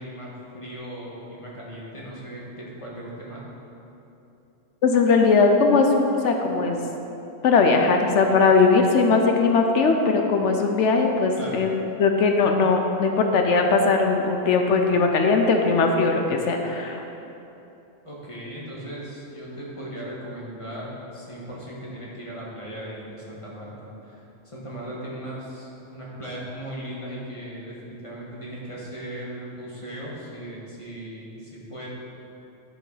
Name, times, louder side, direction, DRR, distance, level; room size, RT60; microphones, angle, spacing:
voice 1, 0.0-3.4 11.4-11.6 18.0-24.2 24.4-31.9, right 1 dB, 25° left, -6 dB, 1.5 m, -37 dB
voice 2, 4.8-6.8 7.4-11.7 12.0-17.1, left 4 dB, 70° left, 4 dB, 0.9 m, -19 dB
10.5 x 5.3 x 4.0 m, 2.9 s
omnidirectional pair, 1.3 m